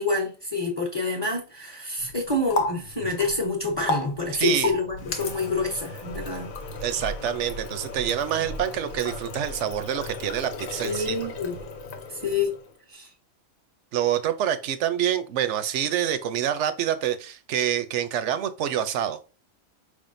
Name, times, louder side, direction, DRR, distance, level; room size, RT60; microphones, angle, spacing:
voice 1, 0.0-6.5 10.8-11.5 12.1-12.5 12.9-13.1, left 3 dB, 20° left, 0.9 m, -27 dB
Water tap faucet, 2.0-12.8, left 2 dB, 80° left, 1.3 m, -34 dB
voice 2, 4.3-4.7 6.8-11.2 13.9-19.2, right 10 dB, 65° right, 0.8 m, -26 dB
4.9 x 3.6 x 2.5 m
omnidirectional pair, 1.4 m